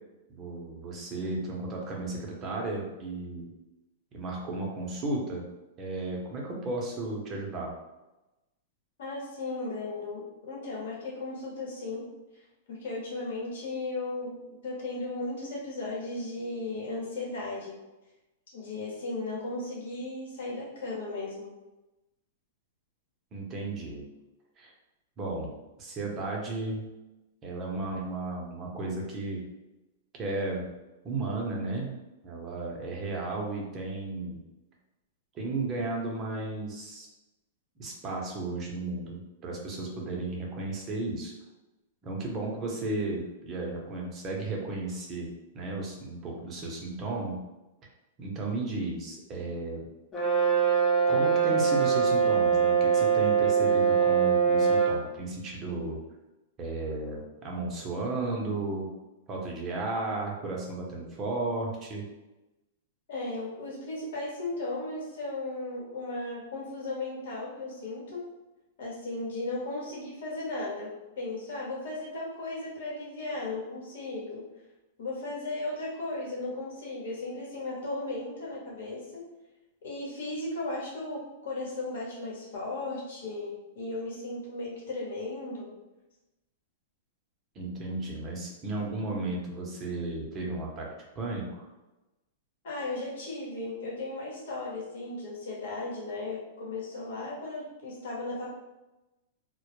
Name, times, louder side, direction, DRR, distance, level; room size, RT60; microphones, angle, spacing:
voice 1, 0.3-3.5 4.1-5.4 5.8-7.7 23.3-24.1 24.6-24.7 25.2-25.5 25.8-26.9 27.4-29.4 30.2-30.6 31.0-31.9 32.2-34.4 35.3-37.1 37.8-41.3 42.0-45.3 45.5-47.4 48.2-49.8 51.1-56.0 56.6-58.9 59.3-62.0 87.6-90.9 91.2-91.7, right 2 dB, 25° right, -1 dB, 0.7 m, -34 dB
voice 2, 9.0-12.1 12.7-17.8 18.5-21.5 63.1-68.2 68.8-70.9 71.2-74.4 75.0-79.2 79.8-85.7 92.6-98.5, left 2 dB, 70° left, -4 dB, 0.9 m, -36 dB
Brass instrument, 50.1-55.0, right 6 dB, 15° left, 0.5 m, -23 dB
2.1 x 2.0 x 3.0 m, 1.0 s
hypercardioid pair, 140°, 0 cm